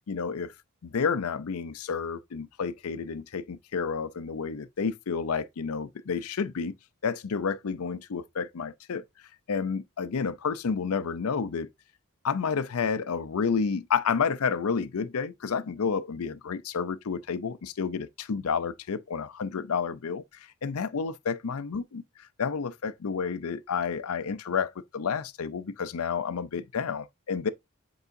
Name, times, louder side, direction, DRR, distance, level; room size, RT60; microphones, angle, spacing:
voice 1, 0.1-0.5 0.8-6.7 7.0-9.0 9.5-11.7 12.2-20.2 20.6-22.0 22.4-27.5, left 6 dB, 90° left, 0.5 m, -30 dB
8.1 x 4.8 x 2.6 m
head